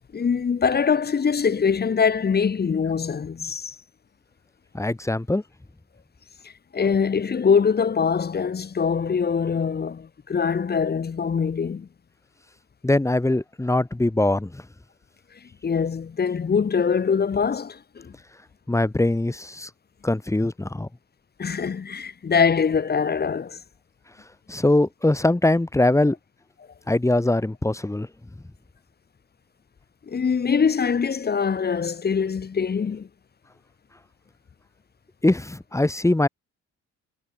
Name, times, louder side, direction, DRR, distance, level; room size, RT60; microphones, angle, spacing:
voice 1, 0.1-3.8 6.4-11.9 15.6-18.1 21.4-23.6 30.1-33.1, left 6 dB, 30° left, 1.1 m, -23 dB
voice 2, 4.7-5.4 12.8-14.6 18.7-19.7 20.0-20.9 24.5-26.1 26.9-28.1 35.2-36.3, left 2 dB, 10° left, 1.6 m, -22 dB
cardioid pair, 90°, 30 cm